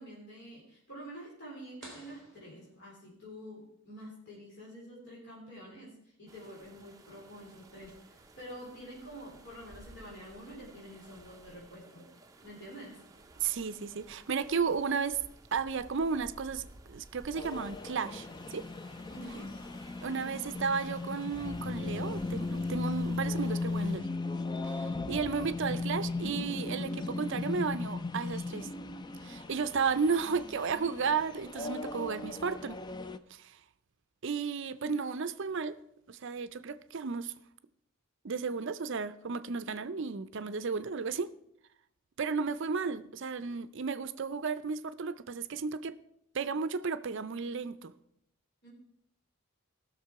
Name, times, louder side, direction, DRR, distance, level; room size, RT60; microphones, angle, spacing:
voice 1, 0.0-5.9 6.2-12.1 12.4-12.9 19.1-19.5 48.6-48.7, equal, 50° left, 3.9 m, -47 dB
sound 1, 1.8-3.5, right 1 dB, 5° left, 3.3 m, -54 dB
sound 2, 6.3-24.0, right 2 dB, 15° right, 0.7 m, -55 dB
voice 2, 13.4-15.2 15.5-18.6 20.0-24.1 24.6-28.7 29.2-32.8 33.3-33.6 34.2-35.8 36.1-37.3 38.2-41.3 42.2-46.0 46.3-47.9, right 5 dB, 55° right, 0.5 m, -33 dB
sound 3, 17.3-33.2, left 3 dB, 20° left, 0.3 m, -37 dB
18.0 x 6.7 x 4.7 m
head